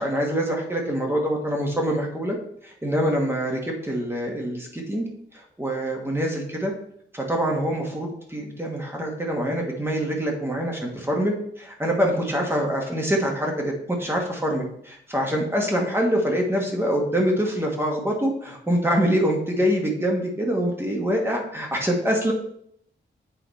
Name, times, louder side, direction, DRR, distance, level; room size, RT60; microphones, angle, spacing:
voice 1, 0.0-2.4 2.6-5.1 5.6-6.7 7.1-22.3, equal, 10° right, 0 dB, 1.3 m, -25 dB
8.4 x 4.8 x 4.1 m, 0.69 s
wide cardioid pair, 135°, 20 cm